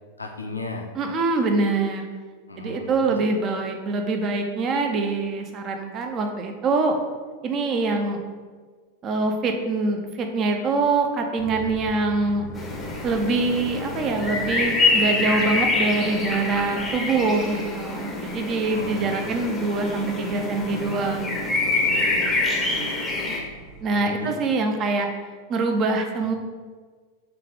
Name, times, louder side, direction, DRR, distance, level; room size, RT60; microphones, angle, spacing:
voice 1, 0.2-0.9 2.5-3.2 18.7-19.4 21.9-22.3 23.9-24.3 26.2-26.3, left 3 dB, 80° left, 3 dB, 0.3 m, -36 dB
voice 2, 1.0-2.1 2.6-7.0 7.4-8.2 9.0-12.4 13.0-21.4 23.8-25.1 25.5-26.3, right 3 dB, 30° right, 4 dB, 0.4 m, -24 dB
sound 1, 11.4-23.8, left 1 dB, 5° right, 0.9 m, -42 dB
sound 2, 12.5-23.4, left 3 dB, 15° left, 0.6 m, -26 dB
3.2 x 2.4 x 3.6 m, 1.5 s
figure-of-eight pair, 90°, 0 cm